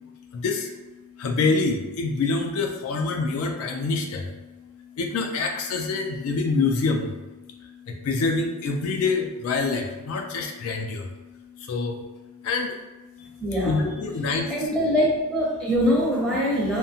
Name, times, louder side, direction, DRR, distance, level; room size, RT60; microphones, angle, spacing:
voice 1, 0.3-0.7 1.2-4.3 5.0-7.2 7.6-11.1 11.6-12.1 12.4-12.8 13.6-14.7, left 3 dB, 70° left, 3 dB, 0.3 m, -26 dB
voice 2, 13.4-13.8 14.5-16.8, equal, 5° left, -5 dB, 0.5 m, -23 dB
2.7 x 2.1 x 2.6 m, 1.2 s
head